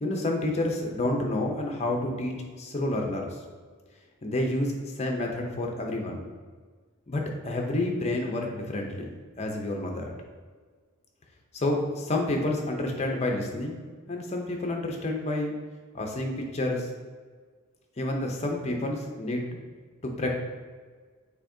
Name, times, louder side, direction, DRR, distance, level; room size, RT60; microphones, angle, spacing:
voice 1, 0.0-3.3 4.2-6.2 7.1-10.1 11.5-13.8 14.1-15.5 15.9-16.9 18.0-19.4 20.0-20.3, left 1 dB, 30° left, 1 dB, 0.6 m, -29 dB
7.0 x 2.8 x 2.6 m, 1.5 s
head